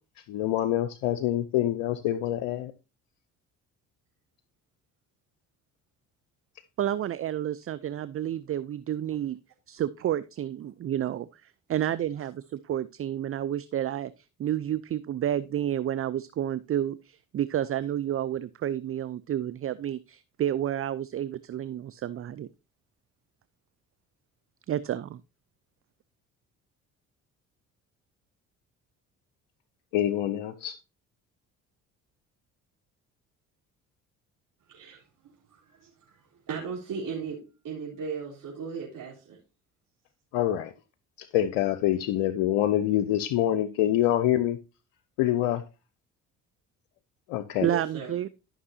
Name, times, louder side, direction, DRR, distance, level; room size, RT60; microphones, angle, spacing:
voice 1, 0.3-2.7 29.9-30.8 40.3-40.7 41.2-44.6 45.2-45.6 47.3-47.7, left 12 dB, 75° left, 0.7 m, -26 dB
voice 2, 6.8-9.4 9.7-22.5 24.7-25.2 47.6-48.3, right 11 dB, 35° right, 0.5 m, -30 dB
voice 3, 34.7-35.0 35.5-39.4 47.6-48.1, right 6 dB, 55° right, 3.7 m, -37 dB
13.0 x 6.0 x 2.7 m
hypercardioid pair, 55°, 38 cm